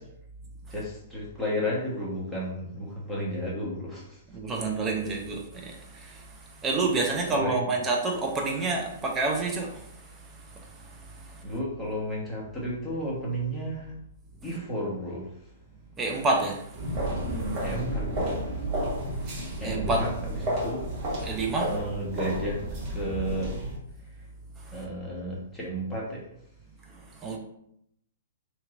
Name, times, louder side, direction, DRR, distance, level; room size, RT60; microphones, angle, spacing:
voice 1, 0.7-4.4 7.3-7.7 11.4-14.0 14.4-15.5 17.6-18.7 19.6-20.8 21.6-23.6 24.0-24.3 24.7-26.3, equal, 5° left, -7 dB, 1.1 m, -33 dB
voice 2, 4.3-6.3 6.6-9.9 10.5-11.4 16.0-16.6 19.6-20.0 21.2-21.7 27.2-27.4, right 3 dB, 20° right, 0 dB, 0.6 m, -28 dB
sound 1, 16.7-23.8, right 1 dB, 35° right, 1.3 m, -31 dB
2.9 x 2.8 x 2.5 m, 0.75 s
figure-of-eight pair, 120°, 0 cm